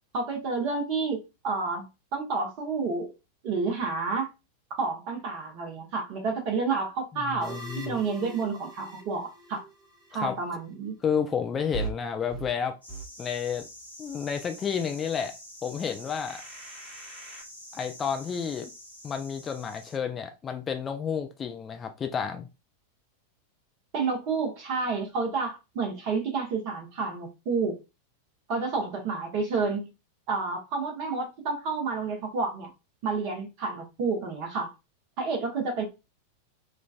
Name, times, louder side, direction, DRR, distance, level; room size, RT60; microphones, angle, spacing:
voice 1, 0.1-1.8 2.1-3.1 3.4-4.3 4.8-7.6 7.8-9.6 10.1-11.0 23.9-27.8 28.5-29.9 30.3-32.7 33.0-34.7 35.2-35.8, right 4 dB, 45° right, 1.1 m, -30 dB
voice 2, 7.3-8.0 10.1-10.4 11.0-12.8 13.2-13.7 14.0-15.4 15.6-16.4 17.7-18.7 19.0-22.5, left 7 dB, 20° left, 0.4 m, -31 dB
sound 1, 7.4-10.2 11.7-11.9 12.3-12.5 12.9-13.0 13.5-13.6 16.3-17.4, right 4 dB, 25° right, 1.4 m, -40 dB
sound 2, 12.8-20.0, left 1 dB, 90° left, 1.4 m, -47 dB
3.7 x 2.4 x 2.3 m
figure-of-eight pair, 90°, 0 cm